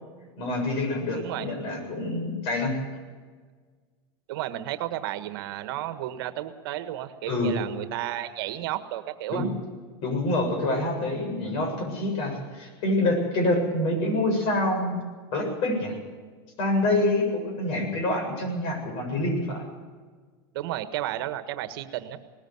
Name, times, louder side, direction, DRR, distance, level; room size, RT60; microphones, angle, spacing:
voice 1, 0.4-2.8 7.3-7.6 9.3-9.5 10.0-15.0 15.3-16.0 16.6-19.6, left 1 dB, 50° left, 3 dB, 7.6 m, -26 dB
voice 2, 1.1-1.5 4.3-9.5 20.5-22.2, right 13 dB, 70° right, 10 dB, 1.4 m, -32 dB
19.5 x 14.0 x 9.5 m, 1.5 s
supercardioid pair, 145°, 13 cm